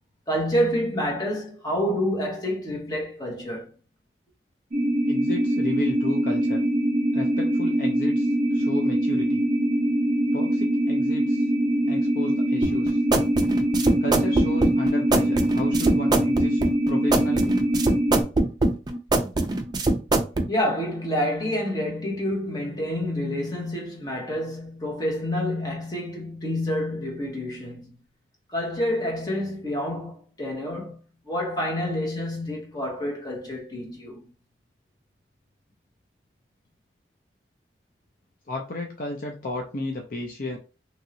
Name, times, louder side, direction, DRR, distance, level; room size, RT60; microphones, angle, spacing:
voice 1, 0.3-3.7 20.5-27.9 28.5-31.0 31.3-34.3, equal, 20° left, 1.0 m, -28 dB
sound 1, 4.7-18.2, right 1 dB, 50° right, 0.7 m, -23 dB
voice 2, 5.1-6.6 7.1-9.4 10.3-11.5 11.9-13.0 14.0-16.6 16.9-17.6 38.5-40.6, left 1 dB, 50° left, 0.5 m, -33 dB
sound 2, 12.6-20.5, right 2 dB, 25° right, 0.3 m, -23 dB
3.0 x 2.7 x 2.7 m
head